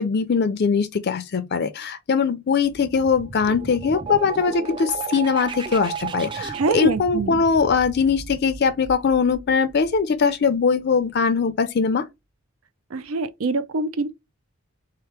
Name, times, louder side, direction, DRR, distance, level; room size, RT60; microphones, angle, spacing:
voice 1, 0.0-12.0, left 5 dB, 50° left, 0.4 m, -21 dB
sound 1, 2.6-10.2, right 5 dB, 25° right, 0.3 m, -34 dB
voice 2, 6.5-7.4 12.9-14.1, right 3 dB, 80° right, 0.5 m, -24 dB
3.7 x 2.9 x 3.3 m
head